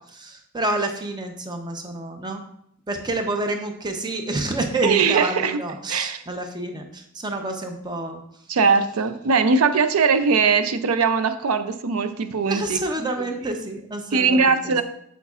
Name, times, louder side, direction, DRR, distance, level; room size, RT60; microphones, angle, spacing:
voice 1, 0.1-2.4 2.9-8.2 12.3-14.8, right 2 dB, 20° right, 5 dB, 0.7 m, -28 dB
voice 2, 4.8-5.6 5.9-6.2 8.5-13.1 14.1-14.8, right 5 dB, 75° right, 10 dB, 0.5 m, -20 dB
8.2 x 7.1 x 2.4 m, 0.72 s
head